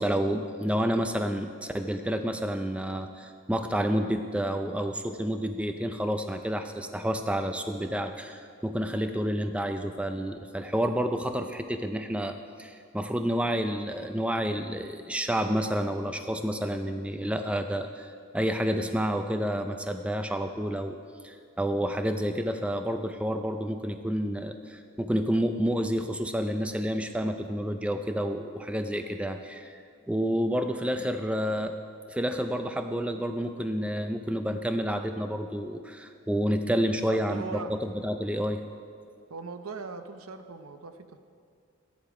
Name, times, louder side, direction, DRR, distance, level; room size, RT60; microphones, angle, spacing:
voice 1, 0.0-21.0 21.2-31.7 32.1-38.6, equal, 5° right, 7 dB, 0.4 m, -29 dB
voice 2, 36.9-37.7 39.3-41.2, right 4 dB, 90° right, 8 dB, 0.8 m, -40 dB
13.5 x 10.5 x 4.9 m, 2.3 s
head